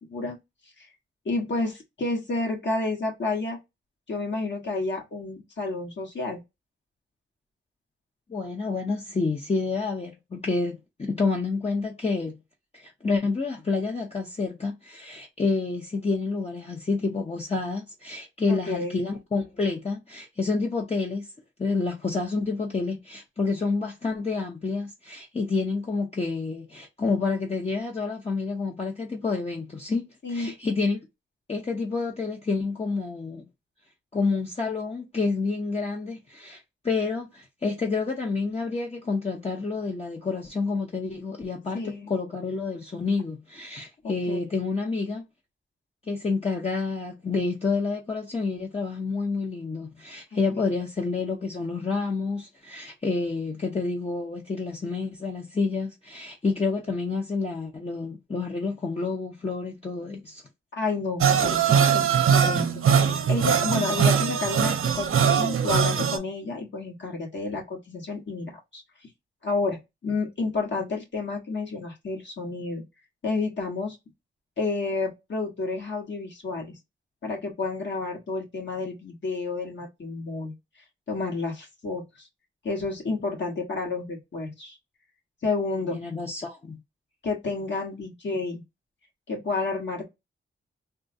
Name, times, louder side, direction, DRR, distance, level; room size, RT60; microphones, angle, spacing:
voice 1, 1.2-3.6 4.1-6.4 18.5-19.0 30.2-30.5 41.7-42.1 44.0-44.4 50.3-50.6 60.7-68.8 69.4-72.8 73.2-74.0 74.6-76.7 77.2-80.6 81.1-82.3 82.6-84.8 85.4-86.0 87.2-88.6 89.3-90.1, left 3 dB, 60° left, 1.5 m, -30 dB
voice 2, 8.3-12.4 12.7-21.3 21.6-31.0 31.5-33.4 34.1-45.2 46.1-60.4 85.7-86.8, left 4 dB, 30° left, 0.8 m, -29 dB
sound 1, 61.2-66.2, right 7 dB, 75° right, 0.6 m, -21 dB
3.6 x 2.1 x 2.7 m
cardioid pair, 80°, 21 cm